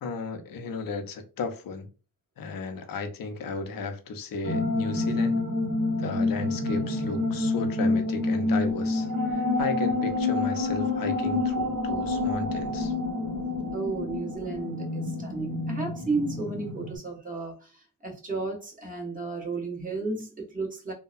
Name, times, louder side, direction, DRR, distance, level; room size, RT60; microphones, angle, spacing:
voice 1, 0.0-1.9 2.4-5.4 6.0-12.9, left 4 dB, 65° left, 0.6 m, -34 dB
sound 1, 4.4-17.0, left 2 dB, 50° right, 1.1 m, -28 dB
voice 2, 13.7-20.9, right 3 dB, 20° right, 1.2 m, -33 dB
2.7 x 2.1 x 2.4 m
cardioid pair, 100°, 36 cm